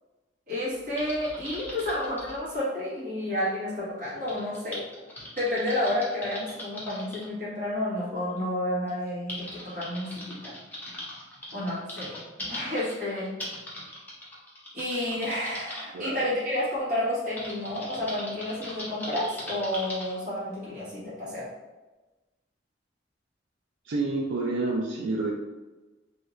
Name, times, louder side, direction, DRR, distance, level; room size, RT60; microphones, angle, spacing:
voice 1, 0.5-4.8 5.4-10.5 11.5-12.2 12.5-13.3 14.7-21.5, left 1 dB, 45° right, -9 dB, 1.4 m, -30 dB
Typing, 1.0-2.4 4.3-7.3 8.3-8.4 8.9-15.8 17.4-20.1, left 1 dB, 10° left, 0.6 m, -40 dB
voice 2, 23.8-25.3, right 3 dB, 80° right, -1 dB, 0.4 m, -28 dB
3.1 x 2.7 x 2.4 m, 1.2 s
head